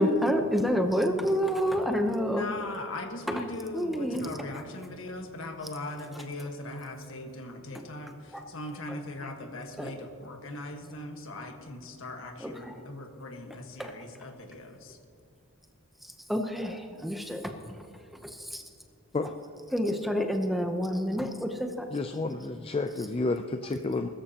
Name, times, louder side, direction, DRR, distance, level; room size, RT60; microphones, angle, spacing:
voice 1, 0.0-2.5 3.3-3.4 3.7-4.3 7.7-7.8 8.3-8.4 9.8-9.9 12.4-12.7 13.8-13.9 16.0-17.9 18.2-18.6 19.7-21.9, equal, ahead, 4 dB, 0.8 m, -28 dB
voice 2, 2.3-15.0, left 2 dB, 65° left, 4 dB, 1.5 m, -40 dB
voice 3, 21.9-24.1, left 3 dB, 25° left, 7 dB, 0.4 m, -30 dB
21.0 x 13.5 x 2.9 m, 2.4 s
head